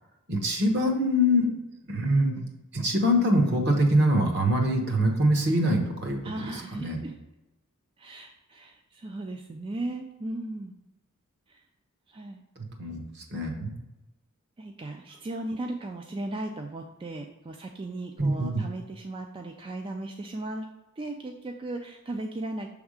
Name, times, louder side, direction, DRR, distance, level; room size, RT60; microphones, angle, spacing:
voice 1, 0.3-1.5 1.9-2.4 2.7-6.2 6.7-7.0 12.8-13.0 13.3-13.7 18.2-18.5, equal, 50° right, 2 dB, 1.1 m, -23 dB
voice 2, 6.2-7.1 8.0-10.7 11.5-11.6 12.1-12.4 14.6-20.7 21.0-22.7, right 2 dB, 25° right, 3 dB, 0.3 m, -36 dB
6.3 x 3.5 x 4.9 m, 0.99 s
head